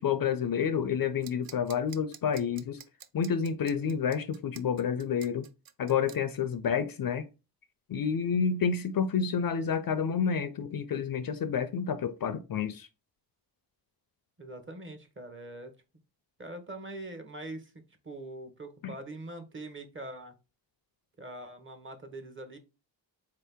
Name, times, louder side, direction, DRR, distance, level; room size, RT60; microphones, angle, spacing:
voice 1, 0.0-2.8 3.1-5.5 5.8-7.3 7.9-12.9 18.8-18.9, left 7 dB, 55° left, 0.5 m, -29 dB
sound 1, 1.2-6.2, right 9 dB, 55° right, 0.5 m, -49 dB
voice 2, 14.4-15.7 16.4-17.7 18.0-20.3 21.2-22.6, right 1 dB, 25° right, 0.8 m, -43 dB
3.9 x 2.8 x 3.4 m
wide cardioid pair, 100°, 44 cm